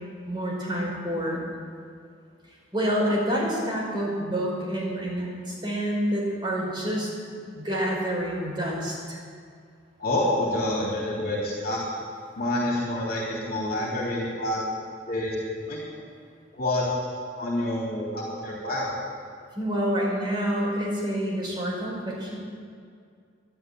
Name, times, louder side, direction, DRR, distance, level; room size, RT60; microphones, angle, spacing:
voice 1, 0.3-1.4 2.7-9.2 19.5-22.4, equal, 25° right, -4 dB, 5.1 m, -28 dB
voice 2, 10.0-11.8 12.3-14.6 15.1-15.4 15.7-15.8 16.5-16.9 17.4-18.9, left 1 dB, 50° left, -4 dB, 3.3 m, -27 dB
12.5 x 11.0 x 9.3 m, 2.2 s
head